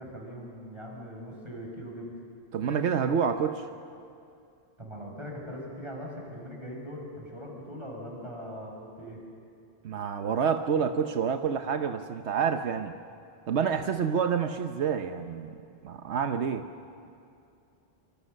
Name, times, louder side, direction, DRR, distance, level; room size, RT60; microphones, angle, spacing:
voice 1, 0.0-2.1 4.8-9.2, equal, 25° right, -1 dB, 5.8 m, -41 dB
voice 2, 2.5-3.6 9.8-13.0 13.5-15.5 15.8-16.6, right 7 dB, 85° right, 7 dB, 1.2 m, -28 dB
26.0 x 25.0 x 6.6 m, 2.5 s
omnidirectional pair, 1.1 m